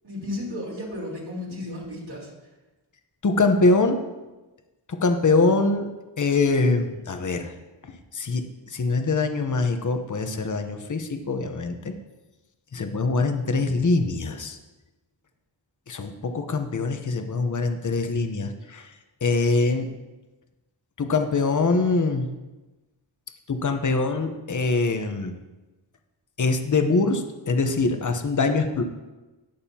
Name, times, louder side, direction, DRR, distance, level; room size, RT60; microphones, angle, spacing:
voice 1, 0.0-2.3, left 1 dB, 55° right, -4 dB, 3.9 m, -33 dB
voice 2, 3.2-4.0 4.9-5.9 6.2-7.5 8.1-11.9 12.7-14.6 15.9-18.9 19.2-19.9 21.0-22.3 23.5-25.4 26.4-28.8, left 3 dB, 40° left, 6 dB, 1.0 m, -23 dB
19.0 x 6.6 x 2.9 m, 1.1 s
wide cardioid pair, 75°, 45 cm